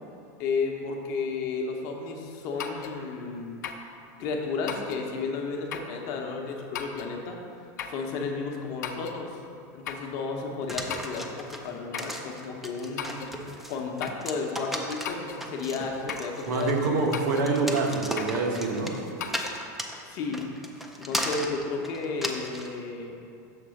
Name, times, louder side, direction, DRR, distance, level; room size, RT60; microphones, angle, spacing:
voice 1, 0.4-3.5 4.2-7.4 7.9-9.4 9.7-13.3 13.7-16.9 20.1-20.4 21.0-23.1, left 4 dB, 40° left, 1 dB, 0.8 m, -33 dB
sound 1, 2.6-3.0 3.6-3.9 4.7-5.1 5.7-6.0 6.7-7.1 7.8-8.0 8.8-9.2 9.9-10.1 10.9-11.3 11.9-12.2 13.0-13.4 14.0-14.3 15.0-15.4 16.1-16.3 17.1-17.5 18.2-18.4 19.2-19.6, left 7 dB, 80° left, 0.6 m, -36 dB
sound 2, 10.7-22.7, equal, ahead, 0.4 m, -36 dB
voice 2, 16.5-18.9, right 3 dB, 75° right, 1 dB, 1.0 m, -26 dB
6.7 x 3.8 x 6.3 m, 2.6 s
supercardioid pair, 165°, 9 cm